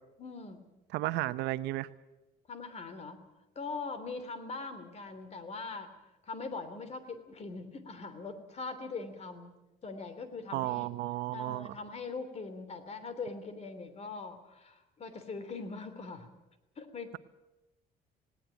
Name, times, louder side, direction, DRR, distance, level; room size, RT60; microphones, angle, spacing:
voice 1, 0.2-0.6 2.5-3.2 3.5-9.5 9.8-10.9 11.3-16.3 16.8-17.2, left 4 dB, 40° left, 11 dB, 3.1 m, -42 dB
voice 2, 0.9-1.9 10.5-11.8, right 16 dB, 90° right, 14 dB, 0.8 m, -33 dB
18.5 x 18.5 x 9.2 m, 1.0 s
cardioid pair, 110°, 17 cm